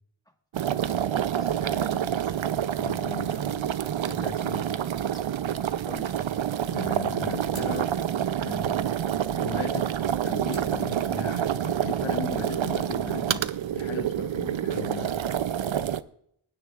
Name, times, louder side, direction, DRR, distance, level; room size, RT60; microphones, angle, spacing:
sound 1, 0.5-16.0, right 10 dB, 80° right, 0.6 m, -28 dB
voice 1, 1.0-2.4 5.4-6.1, equal, 10° left, 3 dB, 1.5 m, -46 dB
voice 2, 2.8-3.8 4.0-4.7 6.7-8.1 8.4-8.8 9.3-9.9 10.2-13.5 13.7-15.2, left 6 dB, 90° left, 7 dB, 1.0 m, -37 dB
sound 2, 6.7-11.8, right 3 dB, 40° right, 5.0 m, -53 dB
25.5 x 9.6 x 2.4 m, 0.73 s
wide cardioid pair, 100°, 46 cm